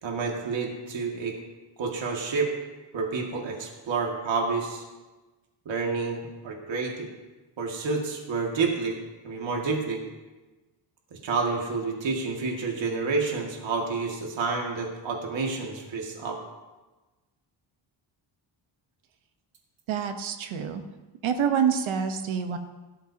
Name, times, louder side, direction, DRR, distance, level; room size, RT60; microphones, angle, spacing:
voice 1, 0.0-1.4 1.8-2.5 2.9-4.8 5.7-7.1 7.6-9.0 9.2-10.0 11.1-16.4, right 4 dB, 70° right, 0 dB, 2.2 m, -29 dB
voice 2, 19.9-20.8 21.2-22.6, right 7 dB, 90° right, 7 dB, 1.1 m, -26 dB
16.5 x 13.0 x 2.8 m, 1.2 s
wide cardioid pair, 135°, 46 cm